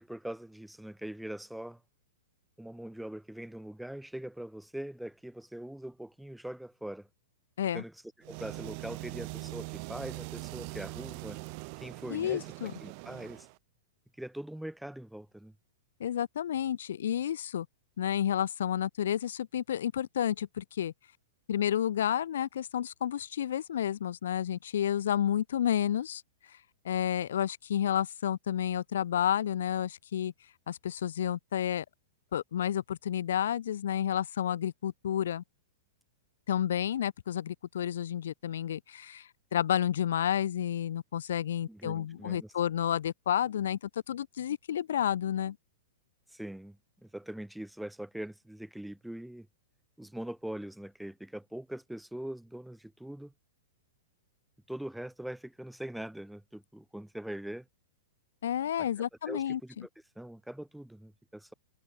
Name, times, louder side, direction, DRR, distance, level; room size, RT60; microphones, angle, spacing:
voice 1, 0.0-1.8 2.6-7.1 7.7-11.4 11.8-13.5 14.2-15.5 41.7-42.5 46.3-49.5 50.0-53.3 54.7-57.7 58.8-58.9 59.3-59.9 60.2-61.5, right 1 dB, ahead, 7.6 m, -42 dB
sound 1, 8.2-13.6, right 38 dB, 35° right, 2.8 m, -42 dB
voice 2, 12.1-12.7 16.0-17.7 18.0-20.9 21.5-26.2 26.8-30.3 30.7-31.8 32.3-35.4 36.5-43.8 44.1-45.6 58.4-59.9, left 10 dB, 75° left, 3.3 m, -31 dB
hypercardioid pair, 160°, 0 cm